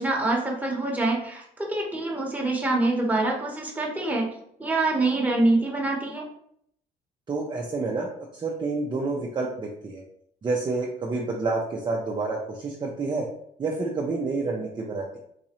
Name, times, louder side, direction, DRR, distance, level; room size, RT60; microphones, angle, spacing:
voice 1, 0.0-4.3 4.6-6.3, right 2 dB, 10° right, -2 dB, 1.0 m, -25 dB
voice 2, 7.3-10.0 10.4-13.3 13.6-15.2, right 3 dB, 25° right, -2 dB, 0.5 m, -29 dB
4.0 x 2.5 x 3.0 m, 0.69 s
cardioid pair, 110°, 17 cm